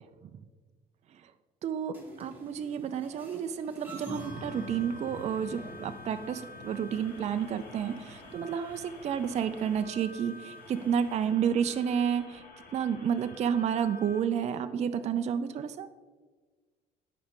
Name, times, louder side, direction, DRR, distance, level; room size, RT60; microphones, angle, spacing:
voice 1, 1.6-12.4 12.7-15.9, right 8 dB, 40° right, 9 dB, 0.4 m, -30 dB
sound 1, 1.9-11.3, equal, 10° right, 2.0 m, -47 dB
sound 2, 4.1-14.2, left 2 dB, 60° left, 1.6 m, -49 dB
10.5 x 5.0 x 3.7 m, 1.4 s
cardioid pair, 110°, 17 cm